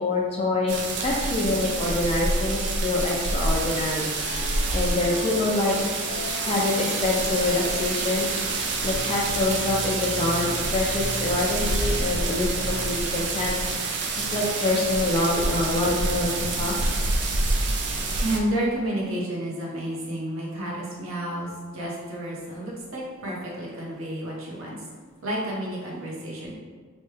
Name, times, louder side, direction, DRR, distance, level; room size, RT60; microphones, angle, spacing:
voice 1, 0.0-5.8 6.3-13.5 13.8-16.8, left 2 dB, 30° left, -2 dB, 0.3 m, -26 dB
sound 1, 0.7-18.4, right 3 dB, 55° right, 0.4 m, -27 dB
sound 2, 4.0-9.0, left 3 dB, 85° left, 0.5 m, -39 dB
sound 3, 8.3-16.0, left 1 dB, 15° right, 1.0 m, -41 dB
voice 2, 18.2-24.8 25.2-26.5, right 1 dB, 80° right, -4 dB, 0.8 m, -30 dB
3.0 x 2.2 x 3.2 m, 1.5 s
head